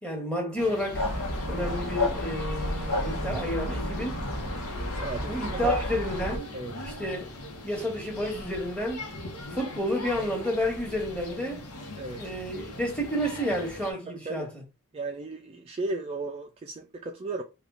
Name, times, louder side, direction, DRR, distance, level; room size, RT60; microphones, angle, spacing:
voice 1, 0.0-1.1 1.5-4.2 5.3-6.5 6.8-7.4 7.6-9.1 9.5-11.7 12.2-14.6, equal, 5° left, 1.1 m, -30 dB
sound 1, 0.6-13.9, left 2 dB, 85° left, 0.9 m, -40 dB
sound 2, 0.9-6.4, left 1 dB, 65° left, 1.3 m, -31 dB
voice 2, 4.9-5.7 6.5-6.9 12.0-12.3 14.1-14.5 14.9-17.4, right 3 dB, 25° right, 0.3 m, -35 dB
3.5 x 2.3 x 3.7 m
head